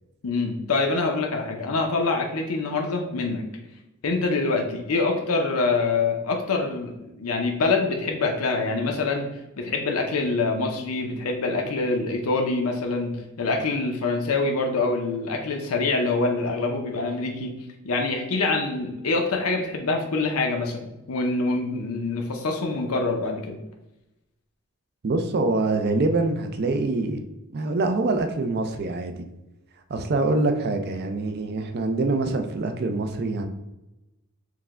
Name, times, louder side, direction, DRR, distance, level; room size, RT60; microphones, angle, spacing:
voice 1, 0.2-3.4 4.0-9.3 9.6-17.6 17.8-23.6, left 3 dB, 80° left, 2 dB, 0.6 m, -25 dB
voice 2, 25.0-27.2 27.5-29.1 29.9-33.5, right 2 dB, 50° right, 7 dB, 0.5 m, -25 dB
4.7 x 2.2 x 3.6 m, 0.95 s
head